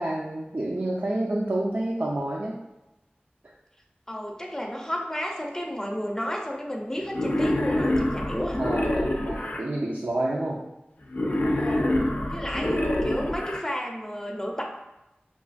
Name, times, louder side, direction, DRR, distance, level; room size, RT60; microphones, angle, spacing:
voice 1, 0.0-2.5 8.6-10.6, right 1 dB, 75° right, -5 dB, 0.5 m, -29 dB
voice 2, 4.1-8.6 11.6-12.0 12.3-14.6, equal, 15° left, 0 dB, 0.6 m, -32 dB
Wild animals, 7.1-9.6 11.1-13.6, left 1 dB, 60° left, 0.5 m, -26 dB
5.4 x 2.4 x 2.4 m, 0.94 s
wide cardioid pair, 45°, 4 cm